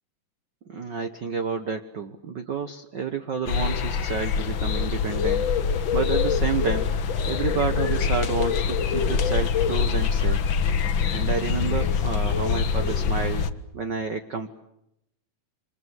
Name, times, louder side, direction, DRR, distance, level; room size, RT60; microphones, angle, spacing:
voice 1, 0.7-5.4 5.9-10.4 11.1-13.5 13.7-14.5, right 5 dB, 55° right, 8 dB, 1.2 m, -30 dB
sound 1, 3.5-13.5, left 6 dB, 60° left, 1.3 m, -24 dB
28.0 x 26.0 x 8.0 m, 0.82 s
omnidirectional pair, 3.7 m